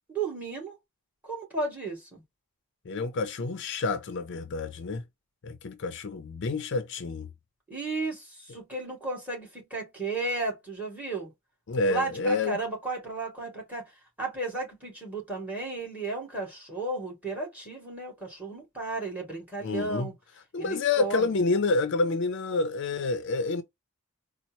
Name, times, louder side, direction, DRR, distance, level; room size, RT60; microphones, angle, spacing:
voice 1, 0.1-0.7 1.2-2.2 7.7-11.3 11.9-13.9 14.2-20.1 20.6-21.3, right 3 dB, 5° right, 1.9 m, -34 dB
voice 2, 2.9-5.0 5.4-7.3 11.7-12.6 19.6-20.1 20.5-23.6, left 3 dB, 55° left, 0.5 m, -28 dB
4.2 x 2.0 x 2.8 m
head